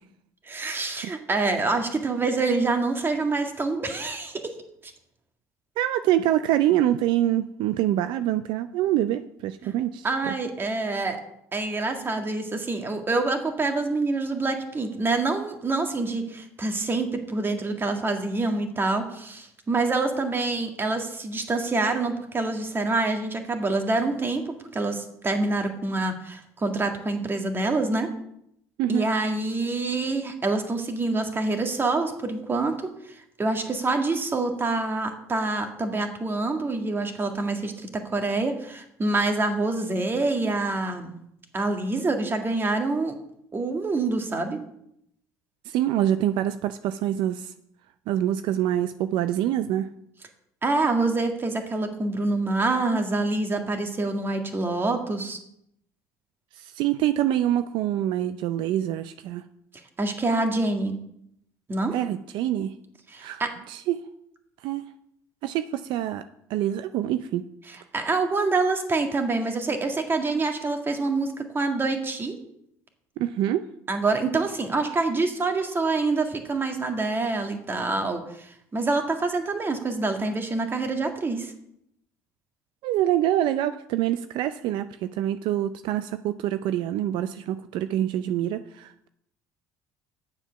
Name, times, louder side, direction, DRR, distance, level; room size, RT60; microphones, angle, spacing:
voice 1, 0.4-4.5 9.6-9.7 10.0-11.2 11.5-28.1 28.9-32.9 33.4-41.1 41.5-43.1 43.5-44.6 50.6-55.4 60.0-61.0 61.7-62.0 63.1-63.5 67.7-72.4 73.9-81.5, right 3 dB, 25° right, 4 dB, 1.8 m, -26 dB
voice 2, 5.8-10.3 28.8-29.1 45.7-47.5 48.1-49.9 56.6-59.4 61.9-62.7 63.2-64.0 64.6-64.8 65.4-66.2 66.5-67.4 73.2-73.6 82.8-89.1, right 12 dB, 70° right, 11 dB, 0.5 m, -25 dB
9.1 x 7.2 x 5.8 m, 0.75 s
supercardioid pair, 90°, 8 cm